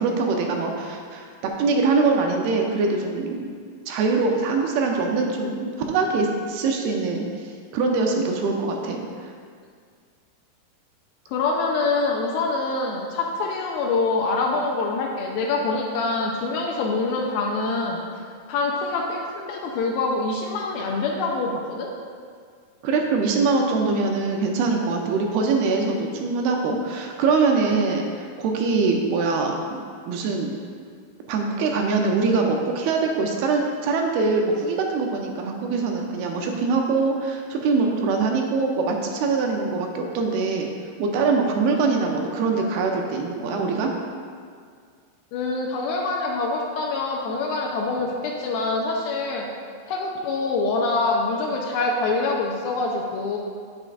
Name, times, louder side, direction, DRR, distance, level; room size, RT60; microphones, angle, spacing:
voice 1, 0.0-3.5 3.9-7.2 7.7-9.3 22.8-29.8 30.1-30.5 31.3-40.7 41.0-43.9, right 4 dB, 80° right, 1 dB, 2.5 m, -23 dB
voice 2, 11.3-18.0 18.5-21.9 45.3-49.5 49.9-53.4, left 3 dB, 80° left, 0 dB, 2.3 m, -25 dB
9.0 x 8.7 x 2.5 m, 2.1 s
omnidirectional pair, 4.6 m